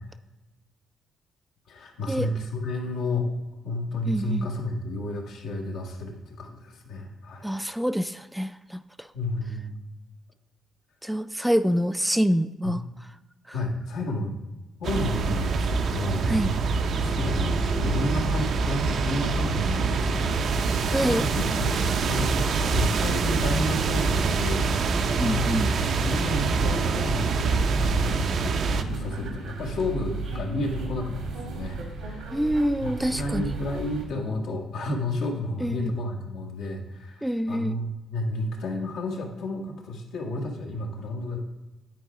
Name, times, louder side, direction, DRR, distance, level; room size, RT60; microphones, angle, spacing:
voice 1, 1.7-3.3 3.6-7.5 9.1-9.8 12.6-12.8 13.5-14.4 14.8-16.7 17.0-20.4 21.1-22.3 22.7-24.7 25.1-27.5 27.8-32.4 32.8-41.4, left 1 dB, 85° left, 0 dB, 1.5 m, -31 dB
voice 2, 4.1-4.5 7.4-8.8 11.0-12.8 16.3-16.5 20.9-21.3 25.2-25.7 32.3-33.5 35.6-35.9 37.2-37.8, equal, 5° right, 12 dB, 0.3 m, -26 dB
sound 1, 14.8-28.8, right 4 dB, 60° right, 0.5 m, -25 dB
sound 2, 16.9-34.1, right 3 dB, 85° right, 1.5 m, -34 dB
9.2 x 4.6 x 4.8 m, 1.1 s
cardioid pair, 90°, 0 cm